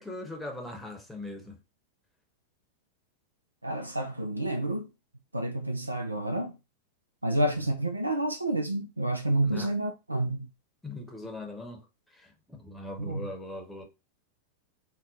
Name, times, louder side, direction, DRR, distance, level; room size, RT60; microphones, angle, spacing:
voice 1, 0.0-1.6 7.4-7.5 9.4-9.7 10.8-11.8 12.1-13.8, left 2 dB, 5° left, 0.8 m, -40 dB
voice 2, 3.6-4.9 5.3-6.5 7.2-10.5 13.0-13.3, right 1 dB, 85° right, 0.3 m, -29 dB
2.7 x 2.1 x 3.6 m
figure-of-eight pair, 90°, 0 cm